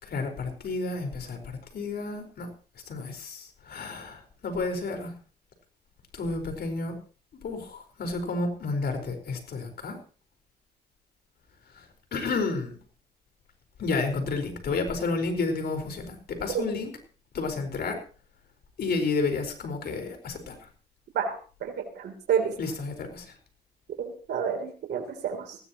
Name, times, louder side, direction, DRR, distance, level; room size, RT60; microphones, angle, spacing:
voice 1, 0.0-2.5 2.9-5.1 6.1-7.0 7.3-10.0 11.7-12.7 13.8-16.9 17.3-18.0 18.8-20.7 22.6-23.3, left 3 dB, 65° left, 5 dB, 5.0 m, -31 dB
voice 2, 21.6-22.5 24.0-25.6, right 7 dB, 80° right, 1 dB, 3.5 m, -29 dB
19.5 x 16.0 x 3.1 m, 0.38 s
cardioid pair, 75°, 17 cm